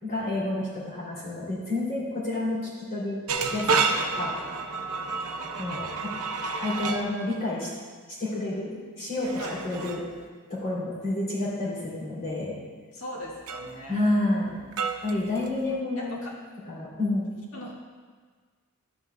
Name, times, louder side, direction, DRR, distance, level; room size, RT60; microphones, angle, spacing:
voice 1, 0.0-3.2 3.5-4.4 5.6-6.1 6.5-7.7 8.2-8.7 9.0-10.0 10.5-12.6 13.9-14.6 15.0-16.3 16.7-17.3, left 2 dB, 40° left, -8 dB, 2.8 m, -29 dB
sound 1, 3.3-7.1 9.2-10.1 13.5-13.8 14.7-15.8, right 4 dB, 75° right, 0.7 m, -29 dB
voice 2, 12.9-14.0 16.0-16.3 17.5-17.7, left 1 dB, 65° left, -4 dB, 1.9 m, -39 dB
12.0 x 9.6 x 2.2 m, 1.5 s
head